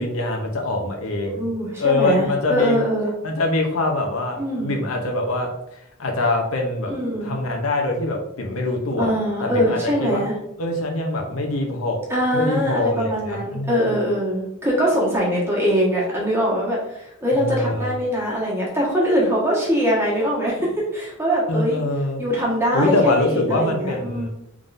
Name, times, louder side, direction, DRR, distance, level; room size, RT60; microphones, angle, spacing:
voice 1, 0.0-1.5 1.8-2.8 3.2-5.5 6.0-6.9 7.2-9.1 9.4-10.2 10.6-12.0 12.3-13.7 17.3-18.0 21.5-22.2 22.7-24.3, left 2 dB, 85° left, 2 dB, 0.7 m, -23 dB
voice 2, 1.2-3.1 4.4-4.7 6.9-7.4 9.0-10.3 12.1-21.8 22.2-24.3, equal, 10° right, -6 dB, 1.3 m, -22 dB
3.7 x 3.5 x 2.6 m, 0.79 s
head